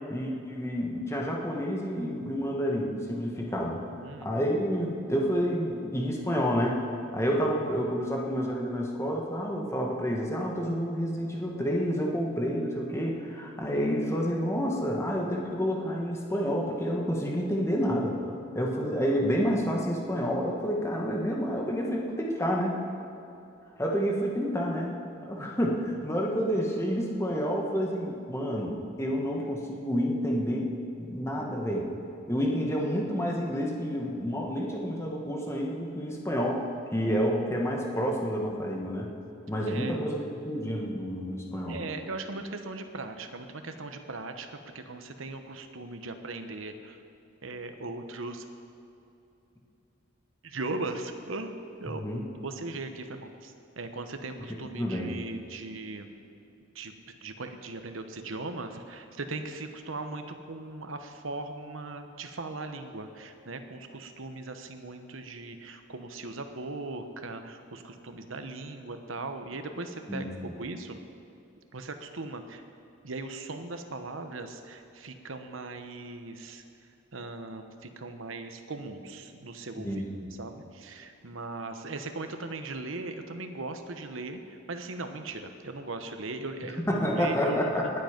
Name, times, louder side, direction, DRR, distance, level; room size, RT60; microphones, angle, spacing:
voice 1, 0.1-3.8 4.2-6.8 7.1-22.8 23.8-30.7 31.0-31.9 32.3-36.6 36.9-39.1 39.5-41.8 51.9-52.2 54.5-55.1 70.1-70.3 79.8-80.0 86.9-87.9, equal, 15° left, -1 dB, 1.5 m, -29 dB
voice 2, 3.9-4.4 39.6-40.0 41.7-47.0 47.4-48.5 50.4-51.5 51.8-52.0 52.3-56.1 56.7-56.9 57.2-71.0 71.7-72.6 73.0-76.6 77.1-87.8, right 2 dB, 80° right, 7 dB, 1.0 m, -39 dB
20.0 x 7.9 x 5.2 m, 2.8 s
head